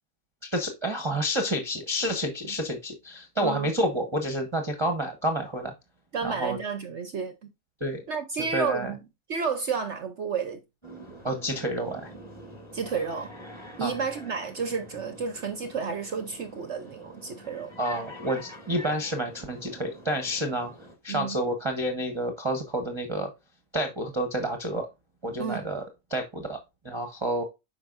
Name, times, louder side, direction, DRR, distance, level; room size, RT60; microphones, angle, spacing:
voice 1, 0.5-5.7 6.2-6.6 7.8-8.0 8.5-8.9 11.2-12.1 13.8-14.0 17.8-20.7 21.0-23.3 23.7-24.9 25.2-25.8 26.1-26.6 26.8-27.4, right 1 dB, 20° right, 0.9 m, -29 dB
voice 2, 6.1-7.3 8.1-9.0 9.3-10.6 12.7-13.3 13.8-17.7 21.1-21.4 25.4-25.6, right 5 dB, 55° right, 0.9 m, -31 dB
sound 1, 10.8-21.0, equal, 15° left, 1.8 m, -46 dB
8.2 x 5.2 x 2.5 m
omnidirectional pair, 1.8 m